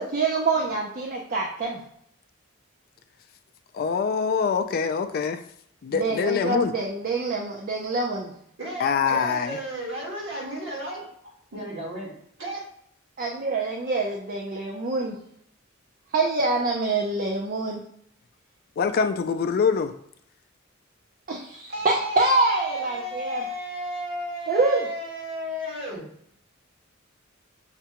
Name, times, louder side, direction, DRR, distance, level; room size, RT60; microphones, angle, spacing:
voice 1, 0.0-1.8 5.9-8.3 13.2-15.2 16.1-17.8 21.3-23.4 24.5-24.9, right 3 dB, 45° right, -1 dB, 0.5 m, -25 dB
voice 2, 3.7-5.4 5.8-6.7 8.8-9.6 18.8-19.9, left 6 dB, 50° left, 8 dB, 0.3 m, -24 dB
voice 3, 8.6-12.7 21.7-26.1, right 1 dB, 65° right, -3 dB, 1.7 m, -33 dB
5.8 x 2.2 x 2.9 m, 0.68 s
head